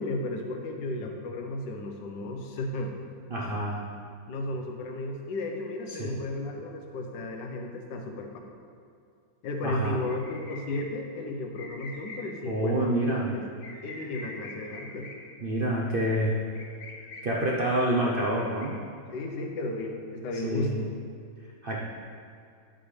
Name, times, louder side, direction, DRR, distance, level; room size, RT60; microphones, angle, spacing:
voice 1, 0.0-2.9 4.3-8.3 9.4-12.9 13.3-13.4 13.8-15.1 19.1-20.9, left 2 dB, 65° left, 3 dB, 1.4 m, -34 dB
voice 2, 3.3-3.8 5.9-6.1 9.6-10.0 12.4-13.3 15.4-16.4 17.2-18.8 20.4-20.8 21.6-21.8, right 1 dB, 90° right, -3 dB, 0.4 m, -27 dB
sound 1, 10.0-10.8 11.6-12.3 13.6-15.1 16.5-17.2 18.6-18.8, left 3 dB, 50° left, 1.3 m, -44 dB
10.0 x 8.0 x 3.3 m, 2.4 s
omnidirectional pair, 2.2 m